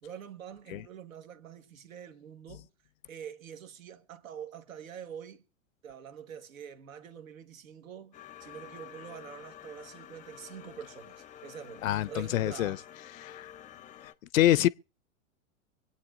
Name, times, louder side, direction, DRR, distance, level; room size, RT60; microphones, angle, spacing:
voice 1, 0.0-2.7 3.1-5.4 5.8-12.8, right 8 dB, 80° right, 1.4 m, -46 dB
sound 1, 8.1-14.1, left 10 dB, 20° left, 0.5 m, -50 dB
voice 2, 11.8-12.8 13.2-13.5 14.3-14.7, left 14 dB, 80° left, 0.5 m, -26 dB
25.0 x 8.8 x 2.5 m
hypercardioid pair, 110°, 40 cm